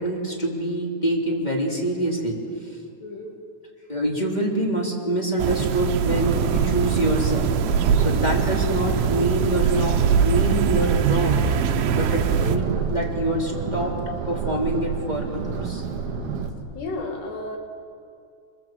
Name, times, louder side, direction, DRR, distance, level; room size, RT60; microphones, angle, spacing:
voice 1, 0.0-2.7 3.9-11.5 11.9-12.6 12.9-13.9 14.3-15.8, right 1 dB, 10° left, -1 dB, 2.5 m, -25 dB
voice 2, 3.0-3.4 12.4-12.5 16.8-17.6, left 2 dB, 65° left, 2 dB, 4.2 m, -32 dB
sound 1, 5.4-12.6, right 7 dB, 90° right, 3.5 m, -23 dB
sound 2, 6.1-16.5, right 6 dB, 65° right, 3.4 m, -29 dB
25.5 x 22.5 x 7.7 m, 2.4 s
omnidirectional pair, 5.2 m